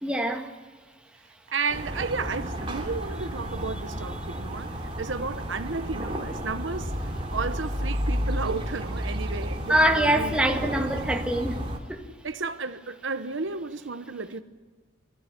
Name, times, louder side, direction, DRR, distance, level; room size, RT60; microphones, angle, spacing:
voice 1, 0.0-0.5 9.7-11.6 11.9-12.1, right 1 dB, 5° right, 1.8 m, -24 dB
voice 2, 1.5-6.9 7.3-10.4 12.2-14.4, right 4 dB, 70° right, 1.0 m, -33 dB
sound 1, 1.7-11.8, equal, 30° right, 3.1 m, -32 dB
25.0 x 15.0 x 9.9 m
head